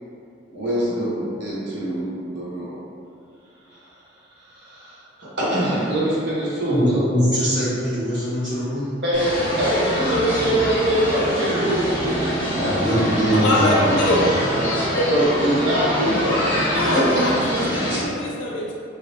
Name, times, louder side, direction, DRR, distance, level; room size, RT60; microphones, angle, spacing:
voice 1, 0.5-2.7 4.6-4.9 5.2-7.0 9.0-12.4 15.1-17.2 17.5-17.7, right 1 dB, 65° right, -8 dB, 0.9 m, -23 dB
voice 2, 6.7-8.9 12.5-14.3, equal, 25° right, -14 dB, 1.5 m, -21 dB
sound 1, 9.1-18.0, equal, 15° left, 1.0 m, -25 dB
voice 3, 13.4-14.1 14.7-15.5 16.7-18.7, left 1 dB, 80° left, -3 dB, 0.6 m, -24 dB
3.2 x 2.7 x 2.6 m, 2.5 s
head